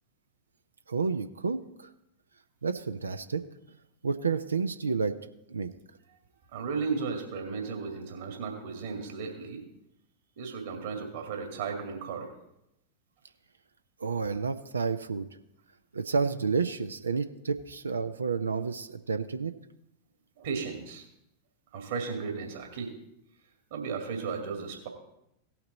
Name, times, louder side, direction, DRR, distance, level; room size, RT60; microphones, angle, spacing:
voice 1, 0.9-1.9 2.6-3.4 4.0-5.2 5.5-5.7 14.0-15.3 15.9-19.5, right 5 dB, 75° right, 10 dB, 0.5 m, -30 dB
voice 2, 6.5-9.6 10.4-12.3 20.4-21.0 21.7-22.9 23.7-24.9, right 5 dB, 55° right, 2 dB, 2.1 m, -35 dB
17.5 x 5.9 x 4.0 m, 0.83 s
figure-of-eight pair, 90°, 0 cm